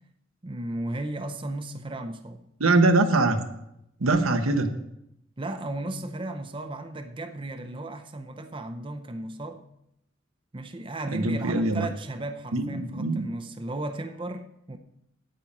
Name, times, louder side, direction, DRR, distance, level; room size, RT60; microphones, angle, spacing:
voice 1, 0.4-2.4 5.4-9.6 10.5-14.8, right 2 dB, 25° right, 0.6 m, -35 dB
voice 2, 2.6-3.4 4.0-4.8 11.1-11.9 12.5-13.3, right 2 dB, 90° right, 1.0 m, -22 dB
9.2 x 8.8 x 5.4 m
head